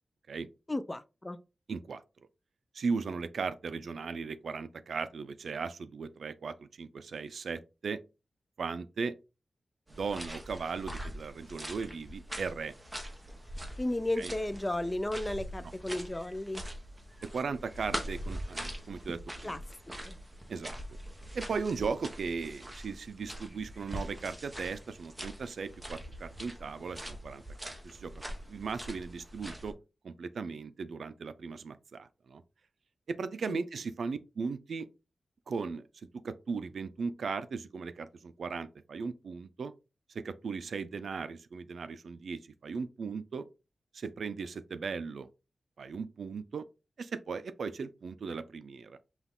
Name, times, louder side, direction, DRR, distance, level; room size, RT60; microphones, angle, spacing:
voice 1, 0.7-1.4 13.8-16.6 19.4-19.6 20.1-20.2 33.5-33.6, left 1 dB, 15° left, 0.3 m, -34 dB
voice 2, 1.7-2.0 2.7-8.0 8.6-9.2 9.9-12.7 14.2-14.3 15.6-15.7 17.3-19.5 20.5-20.8 21.3-28.1 28.5-29.7 30.0-32.4 33.1-34.9 35.5-35.8 36.2-39.7 40.1-43.5 43.9-45.3 45.8-46.6 47.0-49.0, right 5 dB, 85° right, 0.4 m, -37 dB
sound 1, 9.9-29.7, right 1 dB, 10° right, 0.9 m, -43 dB
5.8 x 2.4 x 3.6 m
wide cardioid pair, 155°, 0 cm